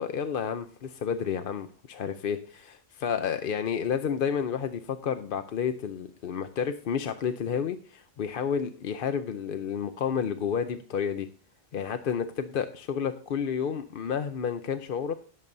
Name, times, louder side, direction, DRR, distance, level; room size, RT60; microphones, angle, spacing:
voice 1, 0.0-11.3 11.7-15.1, left 7 dB, 60° left, 9 dB, 0.8 m, -30 dB
19.0 x 7.5 x 2.6 m, 0.42 s
omnidirectional pair, 1.1 m